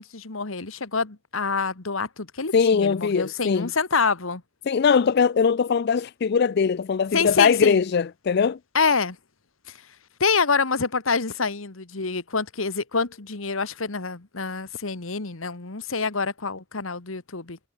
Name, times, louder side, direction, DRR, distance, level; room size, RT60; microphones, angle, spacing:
voice 1, 0.0-4.4 7.1-7.8 8.7-9.2 9.7-9.8 10.2-17.6, left 4 dB, 85° left, 1.7 m, -26 dB
voice 2, 2.5-3.7 4.7-8.6, left 6 dB, 55° left, 0.4 m, -21 dB
head